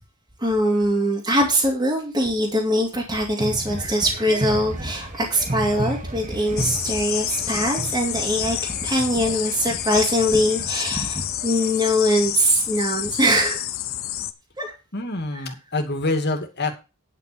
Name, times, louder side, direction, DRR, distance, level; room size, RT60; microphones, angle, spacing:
voice 1, 0.4-13.6 14.6-14.7, equal, 20° right, -3 dB, 2.6 m, -22 dB
sound 1, 3.4-11.8, right 2 dB, 35° right, 1.3 m, -34 dB
sound 2, 6.6-14.3, left 13 dB, 65° left, 0.9 m, -29 dB
voice 2, 14.9-16.7, left 2 dB, 50° left, 6 dB, 2.4 m, -26 dB
10.5 x 5.8 x 6.8 m, 0.29 s
head